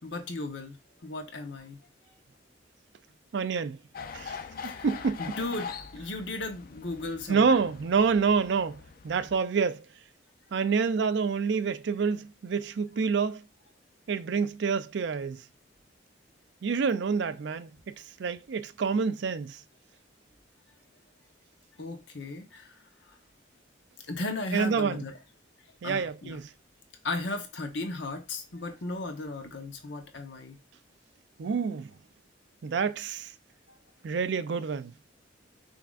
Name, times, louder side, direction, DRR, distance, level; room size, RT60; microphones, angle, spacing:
voice 1, 0.0-1.8 4.6-4.9 5.2-7.6 21.8-22.7 24.1-25.2 25.8-26.4 27.0-30.6 34.0-34.2, left 2 dB, 65° left, 1.0 m, -36 dB
voice 2, 3.3-3.8 4.1-4.4 4.6-5.2 7.3-9.8 10.5-13.4 14.1-15.4 16.6-17.9 18.2-19.6 24.5-25.0 25.8-26.5 31.4-31.9 32.6-33.3 34.0-34.9, right 5 dB, 65° right, 0.4 m, -27 dB
sound 1, 3.9-9.4, left 6 dB, 50° left, 0.4 m, -43 dB
5.9 x 3.5 x 2.4 m
head